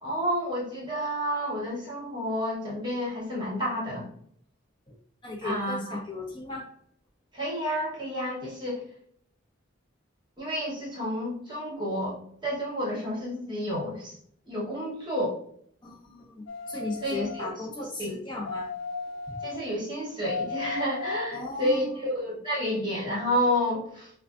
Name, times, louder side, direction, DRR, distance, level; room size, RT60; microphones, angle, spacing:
voice 1, 0.0-4.1 5.4-6.0 7.3-8.8 10.4-14.1 14.5-15.4 17.0-18.1 19.4-24.1, equal, 20° right, -6 dB, 1.1 m, -30 dB
voice 2, 5.2-6.7 15.8-18.7 19.3-19.4 21.3-21.9, left 2 dB, 25° left, -3 dB, 0.8 m, -36 dB
sound 1, 16.5-17.5 18.5-19.6 20.2-21.5 22.1-22.2, left 4 dB, 70° left, 0.3 m, -35 dB
4.7 x 2.3 x 2.4 m, 0.65 s
head